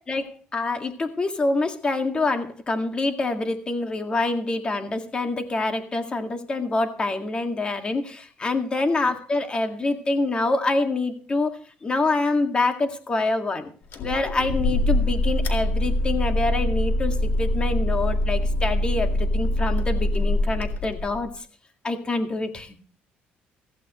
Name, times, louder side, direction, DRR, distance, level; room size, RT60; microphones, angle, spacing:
voice 1, 0.1-13.7 14.0-21.3 21.8-22.8, left 2 dB, 25° left, 6 dB, 2.0 m, -26 dB
sound 1, 13.9-21.3, left 1 dB, 60° left, 2.0 m, -24 dB
15.5 x 15.0 x 3.1 m, 0.42 s
cardioid pair, 115°, 4 cm